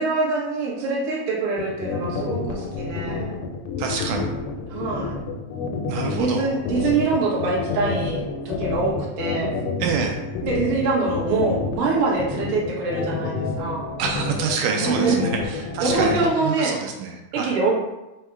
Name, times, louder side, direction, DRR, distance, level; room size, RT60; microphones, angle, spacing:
voice 1, 0.0-3.3 4.7-5.2 6.1-9.5 10.4-13.9 14.8-15.2 15.8-16.8 17.3-17.7, right 3 dB, 60° right, -5 dB, 1.4 m, -24 dB
sound 1, 1.6-16.3, left 5 dB, 85° left, 2.1 m, -28 dB
voice 2, 3.8-4.3 5.9-6.5 9.8-10.2 14.0-17.5, right 6 dB, 80° right, 2 dB, 2.0 m, -27 dB
5.4 x 2.1 x 4.5 m, 0.97 s
omnidirectional pair, 3.8 m